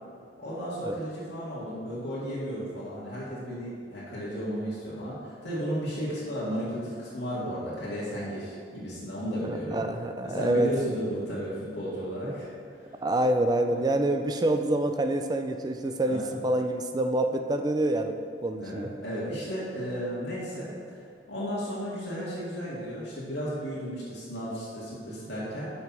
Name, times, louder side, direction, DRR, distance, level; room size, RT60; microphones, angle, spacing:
voice 1, 0.4-9.8 10.2-12.5 16.0-16.3 18.6-21.0 21.3-25.7, equal, 70° left, -8 dB, 2.0 m, -34 dB
voice 2, 9.4-10.7 13.0-18.9, right 1 dB, 20° right, 6 dB, 0.4 m, -27 dB
5.8 x 5.7 x 5.9 m, 2.2 s
head